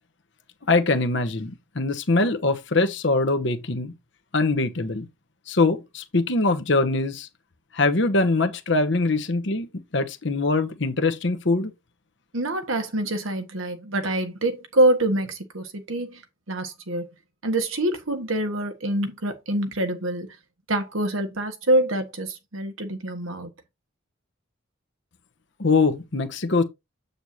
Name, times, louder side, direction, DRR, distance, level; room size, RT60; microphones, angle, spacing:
voice 1, 0.7-3.9 4.3-5.1 5.5-7.3 7.7-11.7 25.6-26.6, left 3 dB, 60° left, 1.0 m, -23 dB
voice 2, 12.3-16.2 16.5-17.1 17.4-20.3 20.7-23.5, right 1 dB, 85° right, 1.6 m, -25 dB
7.9 x 6.6 x 2.8 m
head